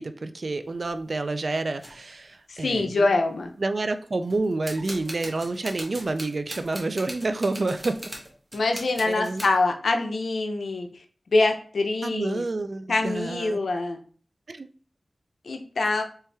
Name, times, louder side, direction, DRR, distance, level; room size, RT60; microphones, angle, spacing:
voice 1, 0.0-3.1 3.6-8.0 9.0-9.5 12.0-13.7 14.5-14.7, right 2 dB, 60° right, 10 dB, 0.4 m, -29 dB
sound 1, 0.6-1.0 1.8-2.0 2.6-2.7 2.9-3.4 4.2-9.6, right 1 dB, 25° right, 1.3 m, -40 dB
voice 2, 2.5-3.5 8.5-10.9 11.3-12.4 12.9-14.0 15.4-16.0, left 2 dB, 90° left, 5 dB, 0.6 m, -24 dB
4.4 x 3.4 x 3.3 m, 0.43 s
cardioid pair, 50°, 0 cm